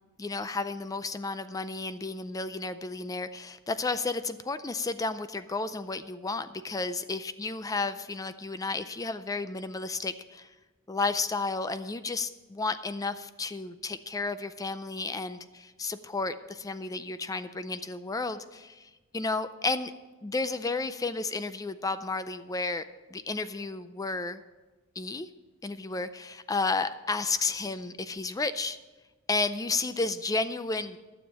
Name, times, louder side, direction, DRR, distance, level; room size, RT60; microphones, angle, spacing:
voice 1, 0.2-10.5 10.9-19.9 20.2-22.8 23.1-24.4 25.0-25.3 25.6-28.8 29.3-31.0, left 3 dB, 15° left, 12 dB, 0.4 m, -32 dB
12.0 x 7.2 x 7.1 m, 1.2 s
head